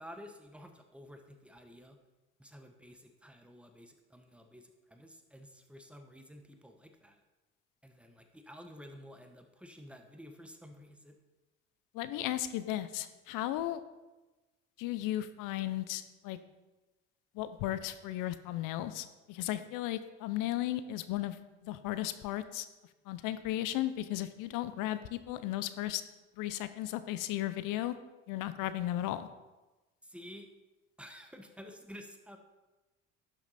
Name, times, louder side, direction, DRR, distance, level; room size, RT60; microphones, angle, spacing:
voice 1, 0.0-2.0 2.4-7.2 7.8-11.2 30.0-30.5 31.0-32.4, equal, 5° right, 6 dB, 1.2 m, -51 dB
voice 2, 11.9-13.8 14.8-16.4 17.3-21.4 21.6-22.7 23.1-26.0 26.4-27.9 28.3-29.3, left 14 dB, 70° left, 13 dB, 0.7 m, -35 dB
11.5 x 5.9 x 4.2 m, 1.1 s
supercardioid pair, 70°, 33 cm